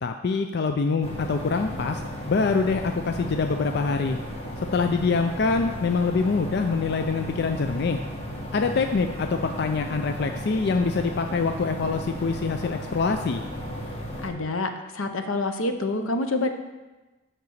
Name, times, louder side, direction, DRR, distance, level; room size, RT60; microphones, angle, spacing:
voice 1, 0.0-2.0 2.3-4.2 4.7-8.0 8.5-13.4, left 4 dB, 55° left, 6 dB, 0.4 m, -25 dB
sound 1, 1.0-14.3, equal, 30° left, 1.2 m, -35 dB
voice 2, 14.2-16.5, left 2 dB, 85° left, 7 dB, 0.8 m, -27 dB
6.7 x 6.0 x 6.5 m, 1.1 s
head